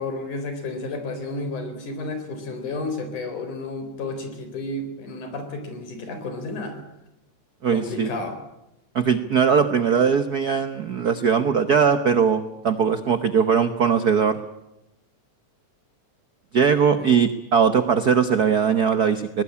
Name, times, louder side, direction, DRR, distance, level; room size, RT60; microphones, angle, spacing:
voice 1, 0.0-6.8 7.7-8.4 17.0-17.2, left 2 dB, 85° left, 8 dB, 5.6 m, -32 dB
voice 2, 7.6-8.1 8.9-14.4 16.5-19.4, right 6 dB, 75° right, 10 dB, 0.8 m, -20 dB
20.0 x 20.0 x 9.9 m, 0.87 s
omnidirectional pair, 3.4 m